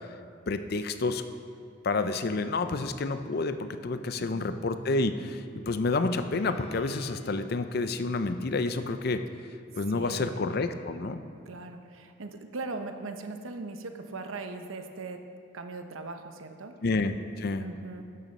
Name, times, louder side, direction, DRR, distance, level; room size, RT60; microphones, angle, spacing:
voice 1, 0.5-1.2 1.8-9.2 9.8-11.2 16.8-17.6, left 3 dB, 50° left, 10 dB, 0.5 m, -29 dB
voice 2, 4.2-4.5 9.9-10.4 11.5-15.2 15.5-16.7 17.6-18.0, right 3 dB, 85° right, 7 dB, 0.8 m, -39 dB
Bowed string instrument, 4.9-8.0, left 1 dB, ahead, 1.9 m, -56 dB
12.5 x 6.9 x 5.3 m, 2.3 s
head